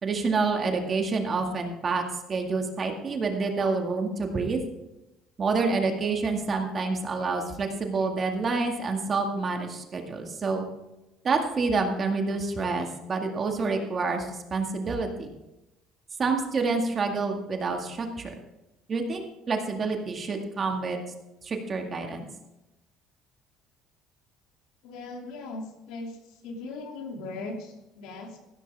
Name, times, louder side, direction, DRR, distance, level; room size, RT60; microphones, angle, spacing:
voice 1, 0.0-2.0 2.3-4.6 5.4-10.7 11.2-15.3 16.2-18.3 18.9-21.0 21.4-22.3, right 4 dB, 35° right, 3 dB, 2.1 m, -28 dB
voice 2, 24.8-26.2 26.4-28.4, left 3 dB, 75° left, 2 dB, 2.8 m, -38 dB
15.0 x 12.5 x 3.6 m, 0.95 s
cardioid pair, 115°, 0 cm